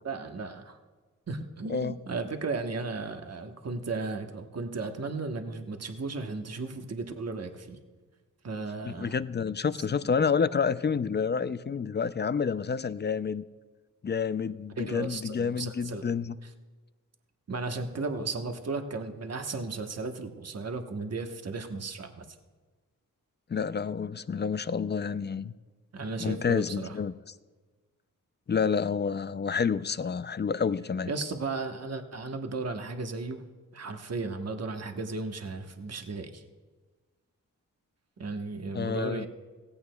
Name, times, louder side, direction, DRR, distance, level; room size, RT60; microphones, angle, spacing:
voice 1, 0.0-0.8 1.3-7.8 8.4-9.2 9.9-10.0 14.8-16.0 16.4-16.5 17.5-22.4 25.9-27.0 31.1-33.4 33.7-36.4 38.2-39.3, right 3 dB, 45° right, 5 dB, 1.1 m, -35 dB
voice 2, 8.8-13.4 14.0-16.4 23.5-25.5 26.2-27.1 28.5-31.1 38.7-39.3, left 6 dB, 30° left, 15 dB, 0.4 m, -29 dB
17.0 x 15.5 x 2.3 m, 1.3 s
cardioid pair, 60°, 34 cm